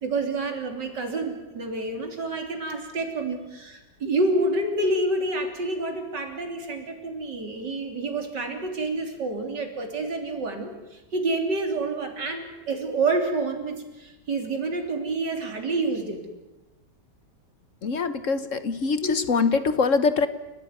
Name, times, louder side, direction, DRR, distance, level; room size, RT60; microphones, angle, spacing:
voice 1, 0.0-16.2 19.0-19.1, right 2 dB, 85° right, 4 dB, 4.0 m, -28 dB
voice 2, 17.8-20.3, left 4 dB, 50° left, 12 dB, 1.3 m, -23 dB
29.5 x 15.0 x 9.6 m, 1.0 s
omnidirectional pair, 1.8 m